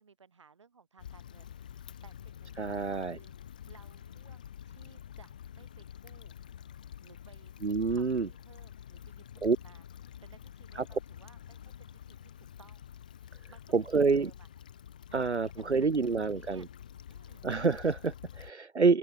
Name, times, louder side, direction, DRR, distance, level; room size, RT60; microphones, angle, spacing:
voice 1, 0.0-3.3 3.7-6.4 7.0-7.5 7.9-9.9 10.2-12.9 13.5-14.5 15.1-16.7 17.1-17.5, right 5 dB, 25° right, 7.3 m, -60 dB
Stream / Traffic noise roadway noise / Trickle dribble, 1.0-18.5, left 9 dB, 5° left, 1.9 m, -48 dB
voice 2, 2.6-3.2 7.6-8.3 9.4-9.6 10.8-10.9 13.7-14.3 15.1-16.7 17.4-19.0, right 4 dB, 70° right, 1.0 m, -27 dB
open air
figure-of-eight pair, 170°, 35 cm